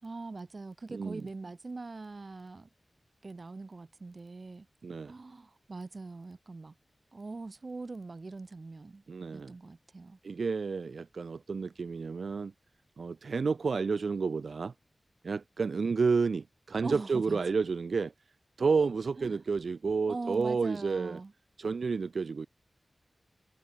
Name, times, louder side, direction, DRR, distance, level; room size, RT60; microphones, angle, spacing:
voice 1, 0.0-2.7 3.2-4.7 5.0-6.7 7.1-9.0 9.3-10.2 16.8-17.4 19.2-19.3 20.1-21.3, right 3 dB, 55° right, 4.4 m, -42 dB
voice 2, 0.9-1.3 4.8-5.1 9.1-9.5 10.2-12.5 13.0-14.7 15.2-18.1 18.6-21.2 21.6-22.5, right 4 dB, 80° right, 0.9 m, -30 dB
cardioid pair, 50°, 0 cm